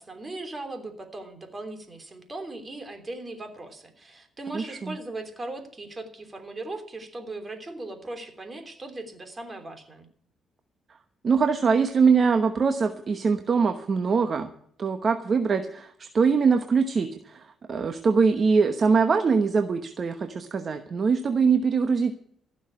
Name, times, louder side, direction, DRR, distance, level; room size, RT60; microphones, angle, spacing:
voice 1, 0.0-10.1, right 2 dB, 25° right, 6 dB, 3.2 m, -38 dB
voice 2, 4.5-4.9 11.2-14.5 14.8-22.1, right 5 dB, 45° right, 7 dB, 1.0 m, -23 dB
15.5 x 6.4 x 9.7 m, 0.67 s
cardioid pair, 90°, 0 cm